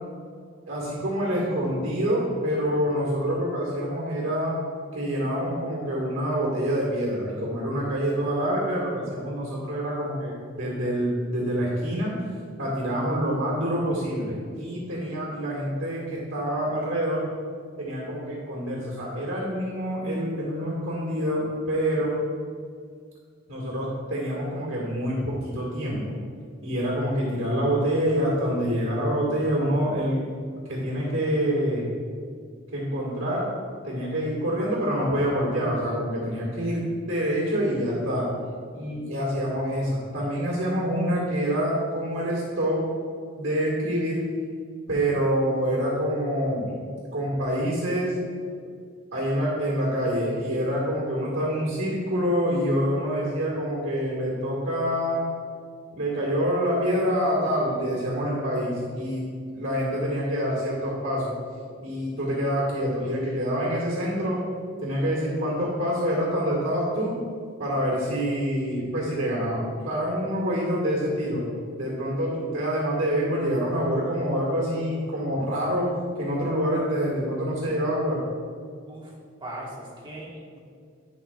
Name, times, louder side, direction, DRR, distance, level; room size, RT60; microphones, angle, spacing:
voice 1, 0.7-4.6 4.9-12.1 12.6-17.3 17.8-22.2 23.5-26.0 26.6-30.2 30.7-31.9 32.7-33.5 33.8-38.3 38.7-42.8 43.4-44.2 44.9-46.7 47.1-48.1 49.1-55.2 55.9-61.3 61.8-64.4 64.8-67.1 67.6-71.4 71.8-75.9 76.2-78.2, equal, 70° right, -6 dB, 1.9 m, -26 dB
voice 2, 79.4-80.6, right 1 dB, 25° right, -5 dB, 1.5 m, -39 dB
11.0 x 5.4 x 2.4 m, 2.1 s
head